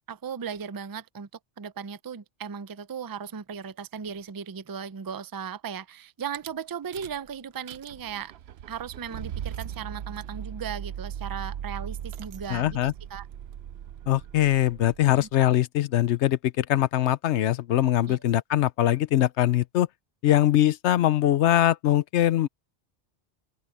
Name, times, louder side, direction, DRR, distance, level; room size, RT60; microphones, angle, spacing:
voice 1, 0.1-1.3 1.6-8.3 8.7-13.3 15.1-15.3 18.1-18.2, right 7 dB, 30° right, 0.4 m, -37 dB
Rattle / Car / Engine starting, 6.3-6.5 6.9-7.3 7.5-15.3, right 10 dB, 70° right, 0.8 m, -39 dB
voice 2, 12.5-12.9 14.1-19.9 20.2-22.5, left 13 dB, 90° left, 0.9 m, -22 dB
open air
omnidirectional pair, 1.1 m